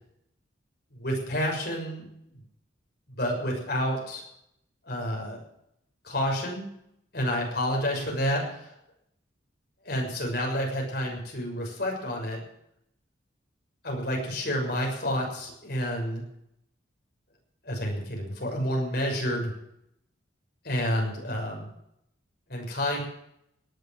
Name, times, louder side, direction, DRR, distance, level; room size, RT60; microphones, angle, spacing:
voice 1, 0.9-2.0 3.2-4.2 4.9-5.4 6.0-6.6 7.1-8.7 9.8-12.4 13.8-16.2 17.6-19.5 20.6-21.7 22.5-23.0, equal, 50° left, 0 dB, 6.5 m, -29 dB
18.5 x 9.4 x 7.5 m, 0.75 s
head